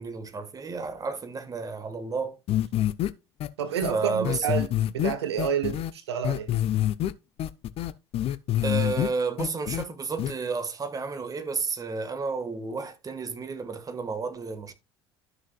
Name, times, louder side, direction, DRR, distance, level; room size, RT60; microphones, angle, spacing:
voice 1, 0.0-2.4 3.9-4.6 8.6-14.7, right 4 dB, 25° right, 1.5 m, -31 dB
sound 1, 2.5-3.1 3.4-3.5 3.8-3.9 4.2-5.9 6.2-7.1 7.4-9.1 9.4-9.8 10.2-10.3, left 12 dB, 45° left, 0.6 m, -26 dB
voice 2, 3.6-6.5, right 8 dB, 75° right, 0.8 m, -29 dB
13.0 x 6.2 x 2.3 m
figure-of-eight pair, 65°, 14 cm